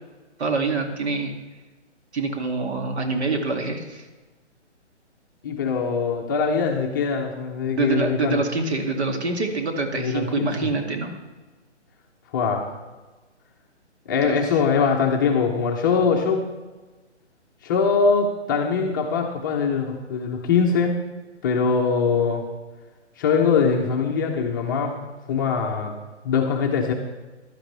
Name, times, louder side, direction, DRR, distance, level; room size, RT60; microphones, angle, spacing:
voice 1, 0.4-1.3 2.1-4.1 7.8-11.1 14.2-14.4, right 3 dB, 65° right, 3 dB, 2.4 m, -25 dB
voice 2, 5.4-8.4 9.9-10.6 12.3-12.7 14.1-16.4 17.6-21.0 21.4-22.4 23.2-25.0 25.3-25.9 26.2-26.9, left 5 dB, 15° left, 0 dB, 0.7 m, -22 dB
15.5 x 11.5 x 3.3 m, 1.2 s
hypercardioid pair, 155°, 36 cm